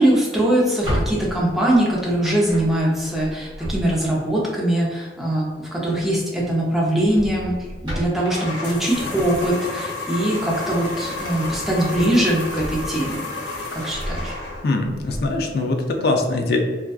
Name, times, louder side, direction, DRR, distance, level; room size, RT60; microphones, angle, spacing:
voice 1, 0.0-13.2 13.7-14.3, right 1 dB, ahead, -5 dB, 0.5 m, -21 dB
Drawer open or close, 0.6-4.3 5.8-6.1 6.4-6.6 7.1-10.0 10.4-13.2 13.6-15.5, equal, 25° right, 1.0 m, -33 dB
sound 1, 8.2-14.8, left 2 dB, 90° left, 0.7 m, -31 dB
voice 2, 14.6-16.6, left 2 dB, 60° left, 3 dB, 0.3 m, -22 dB
2.5 x 2.3 x 2.3 m, 1.4 s
head